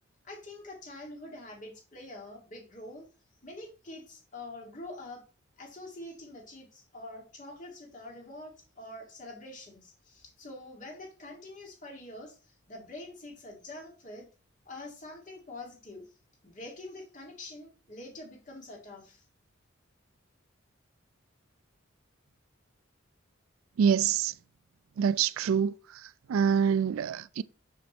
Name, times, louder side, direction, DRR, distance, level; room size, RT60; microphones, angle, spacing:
voice 1, 0.2-3.0 3.4-5.2 5.6-14.3 14.7-16.0 16.4-19.3, left 2 dB, 40° left, 2.1 m, -45 dB
voice 2, 23.8-24.3 25.0-25.7 26.3-27.4, right 7 dB, 80° right, 0.3 m, -25 dB
6.9 x 6.0 x 3.0 m
head